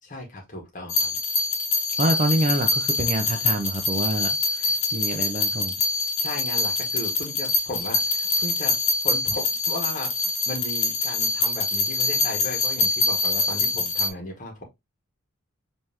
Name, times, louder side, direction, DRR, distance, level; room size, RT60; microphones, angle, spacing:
voice 1, 0.0-1.1 4.6-4.8 6.2-8.8 9.0-14.6, left 1 dB, 35° left, 1.7 m, -35 dB
sound 1, 0.9-14.1, left 3 dB, 65° left, 1.2 m, -25 dB
voice 2, 2.0-4.3 4.9-5.7, right 1 dB, 30° right, 0.5 m, -25 dB
5.4 x 3.3 x 2.9 m
head